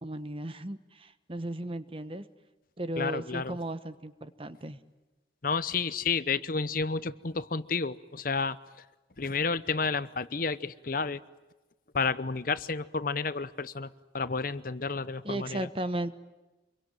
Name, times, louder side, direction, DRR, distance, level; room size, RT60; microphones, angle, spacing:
voice 1, 0.0-2.2 2.8-4.8 15.2-16.1, right 1 dB, 30° right, 12 dB, 1.2 m, -35 dB
voice 2, 3.0-3.6 5.4-8.6 9.2-11.2 11.9-13.9 14.1-15.6, left 4 dB, 50° left, 15 dB, 0.8 m, -31 dB
26.5 x 23.0 x 9.2 m, 1.1 s
head